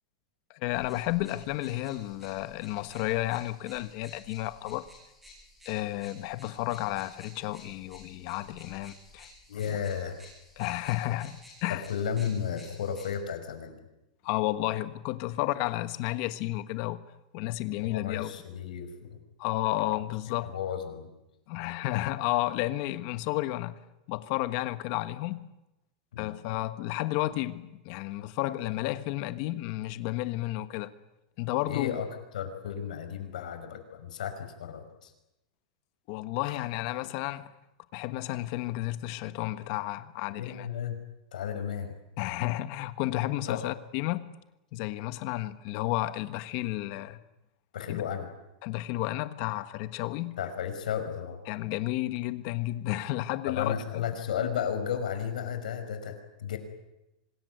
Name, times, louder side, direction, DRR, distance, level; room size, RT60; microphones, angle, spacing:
voice 1, 0.5-4.8 5.6-9.3 10.6-11.8 14.2-17.0 17.3-18.4 19.4-20.5 21.5-23.8 24.1-25.4 26.2-30.9 31.4-31.9 36.1-37.5 37.9-40.7 42.2-44.2 44.7-47.2 47.9-48.0 48.6-50.4 51.5-54.0, left 17 dB, 40° left, 1.4 m, -32 dB
sound 1, 0.7-13.1, left 1 dB, 5° right, 7.1 m, -54 dB
voice 2, 9.5-10.2 11.7-13.8 17.8-19.2 20.3-21.1 26.1-26.4 31.7-32.1 32.3-35.1 36.4-36.6 40.3-41.0 41.3-41.9 43.5-43.7 47.7-48.3 50.4-51.4 53.5-56.6, left 8 dB, 90° left, 5.5 m, -34 dB
25.5 x 21.0 x 9.4 m
supercardioid pair, 170°, 4 cm